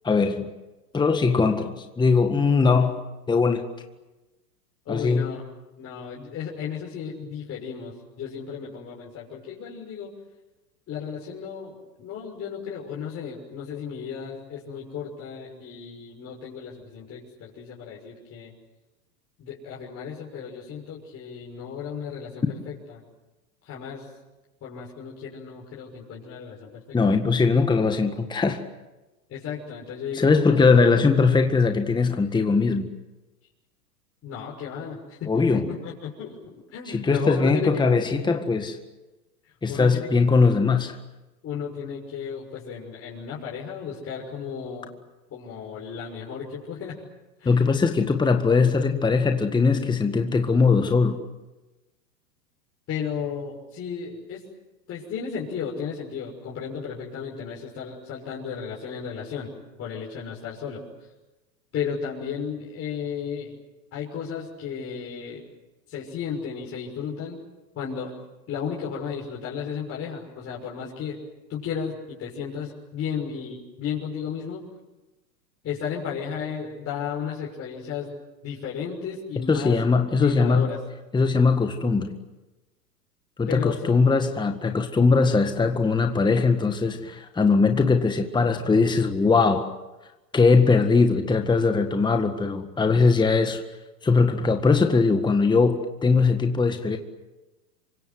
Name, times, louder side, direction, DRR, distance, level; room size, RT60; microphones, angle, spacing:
voice 1, 0.0-0.5 0.9-3.7 4.9-5.3 26.9-28.6 30.1-32.9 35.3-35.6 36.9-38.8 39.6-40.9 47.5-51.2 79.5-80.7 81.1-82.1 83.4-89.7 90.3-93.6 94.0-97.0, left 4 dB, 10° left, 1.7 m, -20 dB
voice 2, 4.8-5.4 5.8-10.1 10.9-18.5 19.4-23.0 23.6-24.1 24.6-27.0 29.3-30.5 30.9-31.0 34.2-37.9 39.7-40.1 41.4-44.9 45.3-46.9 47.4-47.5 52.9-54.4 54.9-59.5 59.8-60.8 61.7-63.5 63.9-65.4 65.9-67.4 67.7-68.1 68.5-71.2 71.5-74.6 75.6-78.1 78.4-79.8 80.2-80.8 83.5-84.0, left 7 dB, 30° left, 6.5 m, -34 dB
29.0 x 24.5 x 8.0 m
hypercardioid pair, 110°, 49 cm